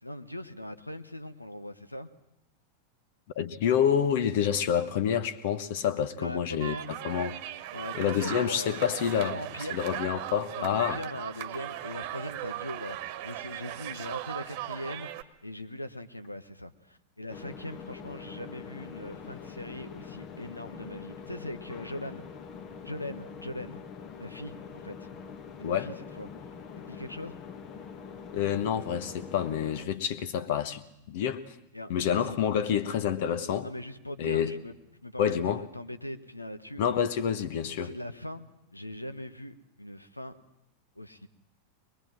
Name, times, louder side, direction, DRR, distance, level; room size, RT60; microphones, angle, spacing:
voice 1, 0.0-2.1 6.0-6.9 7.7-8.7 9.1-9.8 10.6-22.2 22.8-23.8 24.2-25.1 25.6-26.3 26.8-27.4 31.7-32.5 33.6-36.8 37.8-40.3 40.9-41.3, left 1 dB, 85° left, 1.1 m, -41 dB
voice 2, 3.3-6.8 7.0-7.4 8.0-9.4 9.7-11.0 25.6-25.9 28.3-30.8 31.1-31.4 31.9-33.7 34.2-34.5 35.2-35.6 36.8-37.9, left 8 dB, 50° left, 1.2 m, -28 dB
sound 1, 6.6-15.2, right 13 dB, 45° right, 1.3 m, -38 dB
sound 2, 17.3-29.9, left 6 dB, 35° left, 1.7 m, -44 dB
22.5 x 21.5 x 7.6 m
figure-of-eight pair, 90°, 0 cm